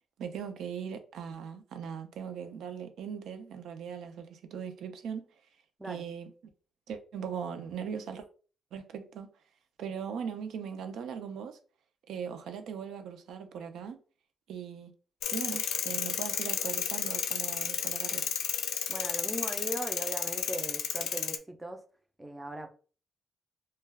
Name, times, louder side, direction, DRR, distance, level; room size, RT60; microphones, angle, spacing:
voice 1, 0.2-5.3 5.8-6.3 6.9-8.3 8.7-9.3 9.8-11.6 12.1-14.0 14.5-14.9 15.3-18.3, right 7 dB, 75° right, 0.4 m, -39 dB
sound 1, 15.2-21.4, left 8 dB, 80° left, 0.3 m, -32 dB
voice 2, 18.9-21.8 22.2-22.7, right 1 dB, 10° right, 0.4 m, -39 dB
2.2 x 2.2 x 3.2 m
cardioid pair, 145°, 0 cm